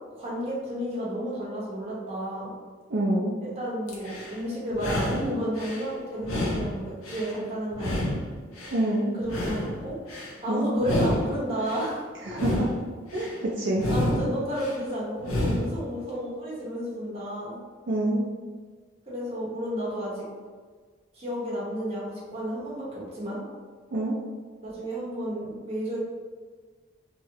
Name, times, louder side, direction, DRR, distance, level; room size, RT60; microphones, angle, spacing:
voice 1, 0.1-2.5 3.4-8.1 9.2-9.9 10.4-12.0 13.9-17.6 19.1-20.3 21.1-23.4 24.6-26.0, equal, 30° right, -6 dB, 0.9 m, -31 dB
voice 2, 2.9-3.4 8.7-9.1 10.5-10.7 12.2-12.7 13.1-13.8 17.9-18.2 23.9-24.2, right 1 dB, 60° right, -5 dB, 0.5 m, -26 dB
sound 1, 3.9-4.4 4.7-5.8 6.2-7.4 7.7-8.8 9.2-10.3 10.8-11.9 12.3-13.3 13.8-14.8 15.2-15.8, left 1 dB, 90° left, 0.8 m, -30 dB
3.1 x 2.8 x 2.7 m, 1.5 s
head